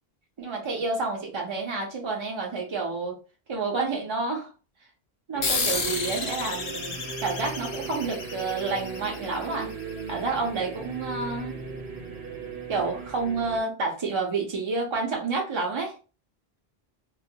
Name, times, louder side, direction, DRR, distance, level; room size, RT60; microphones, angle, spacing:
voice 1, 0.4-3.2 3.5-4.5 5.3-9.7 10.1-11.5 12.7-15.9, right 3 dB, 45° right, 0 dB, 0.3 m, -29 dB
sound 1, 5.3-13.6, right 5 dB, 80° right, 0.9 m, -38 dB
sound 2, 5.4-10.4, left 4 dB, 55° left, 0.6 m, -32 dB
2.2 x 2.1 x 2.6 m, 0.34 s
omnidirectional pair, 1.0 m